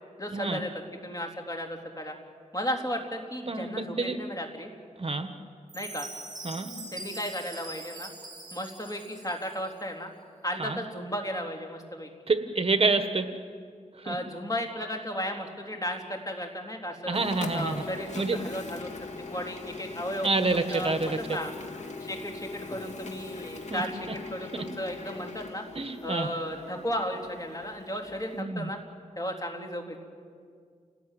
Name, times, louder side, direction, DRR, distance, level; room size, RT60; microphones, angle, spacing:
voice 1, 0.2-0.7 1.0-2.2 2.5-4.7 5.7-6.1 6.9-8.1 8.5-10.1 10.4-12.1 14.0-17.2 17.5-21.5 22.0-25.6 26.0-28.8 29.2-30.0, equal, 25° left, 2 dB, 3.6 m, -35 dB
voice 2, 3.5-4.2 5.0-5.3 6.4-6.7 10.6-10.8 12.3-13.3 14.0-14.2 17.1-17.7 18.1-18.4 20.2-21.2 23.7-23.8 25.7-26.3 28.3-28.7, right 3 dB, 50° right, 8 dB, 1.4 m, -27 dB
Chime, 5.7-9.7, right 2 dB, 30° right, 6.0 m, -43 dB
Printer, 17.1-28.4, left 3 dB, 60° left, 2.6 m, -41 dB
28.5 x 19.0 x 9.3 m, 2.1 s
wide cardioid pair, 80°, 13 cm